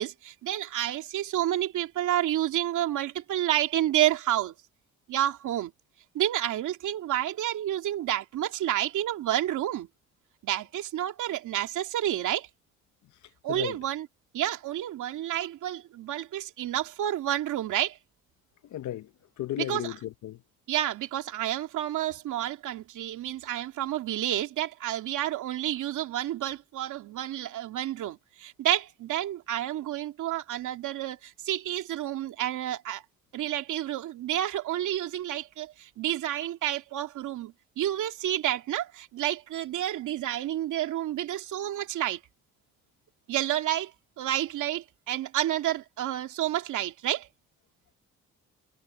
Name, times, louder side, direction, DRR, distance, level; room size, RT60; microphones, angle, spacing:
voice 1, 0.0-4.5 5.1-5.7 6.1-9.9 10.4-12.5 13.4-14.1 14.3-18.0 19.6-19.9 20.7-33.0 33.3-42.2 43.3-43.9 44.2-47.3, right 12 dB, 80° right, 2.6 m, -30 dB
voice 2, 18.7-19.1 19.4-20.4, left 13 dB, 70° left, 1.0 m, -34 dB
cardioid pair, 90°, 30 cm